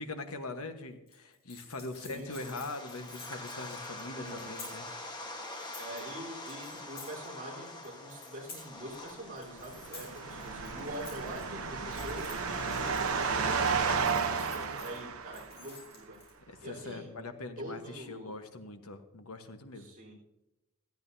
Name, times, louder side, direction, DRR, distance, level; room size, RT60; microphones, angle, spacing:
voice 1, 0.0-4.9 13.7-14.2 16.5-19.9, left 2 dB, 80° left, 7 dB, 1.3 m, -42 dB
sound 1, 1.1-4.9 5.4-6.1 6.5-7.3 7.7-9.1 9.4-11.4 11.9-13.3 13.7-15.0 15.3-16.3, left 4 dB, 45° left, 4.0 m, -51 dB
voice 2, 1.9-2.6 4.1-4.6 5.8-16.2 16.6-17.1 17.6-18.4 19.7-20.1, right 1 dB, 40° right, -4 dB, 4.0 m, -45 dB
sound 2, 2.3-14.0, left 2 dB, 20° left, 1.3 m, -45 dB
sound 3, 9.4-15.8, right 5 dB, 70° right, 0.9 m, -33 dB
16.5 x 13.0 x 2.8 m, 0.97 s
head